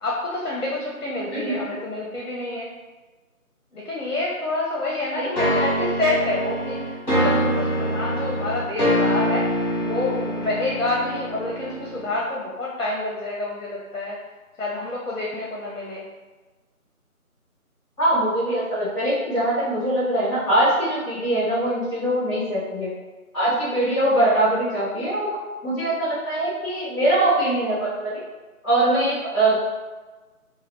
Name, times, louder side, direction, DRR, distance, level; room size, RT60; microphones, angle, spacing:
voice 1, 0.0-2.7 3.7-9.5 9.8-14.2 14.6-16.1, left 2 dB, 60° left, -4 dB, 0.7 m, -28 dB
voice 2, 1.3-1.8 5.1-5.5 18.0-22.9 23.3-25.4 25.6-28.2 28.6-29.6, right 1 dB, ahead, -20 dB, 0.9 m, -22 dB
sound 1, 5.4-12.2, equal, 30° left, 0.9 m, -24 dB
3.3 x 2.2 x 3.2 m, 1.3 s
figure-of-eight pair, 180°, 44 cm